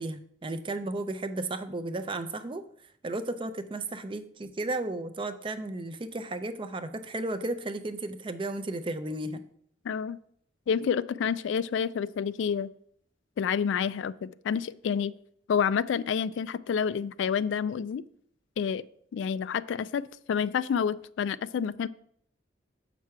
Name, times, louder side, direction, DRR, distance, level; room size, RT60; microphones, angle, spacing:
voice 1, 0.0-2.6 3.0-9.4, right 2 dB, 25° right, 10 dB, 0.5 m, -34 dB
voice 2, 9.9-10.2 10.7-12.7 13.4-15.1 15.5-18.0 18.6-18.8 19.1-21.9, left 7 dB, 70° left, 16 dB, 0.3 m, -29 dB
7.5 x 5.9 x 4.6 m, 0.66 s
head